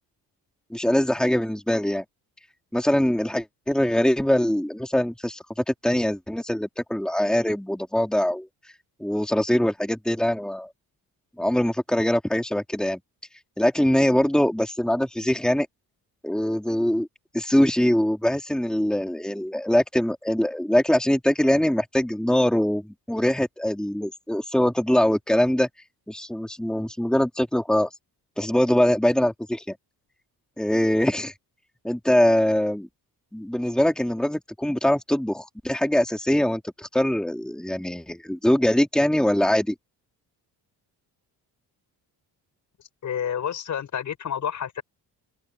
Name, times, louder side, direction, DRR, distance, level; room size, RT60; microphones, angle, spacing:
voice 1, 0.7-2.0 2.7-8.5 9.0-10.7 11.4-13.0 13.6-15.7 16.2-17.1 17.3-25.7 26.1-27.9 28.4-29.8 30.6-31.3 31.8-32.9 33.3-39.7, left 1 dB, ahead, 3.1 m, -23 dB
voice 2, 43.0-44.8, left 8 dB, 50° left, 5.4 m, -29 dB
cardioid pair, 145°, 38 cm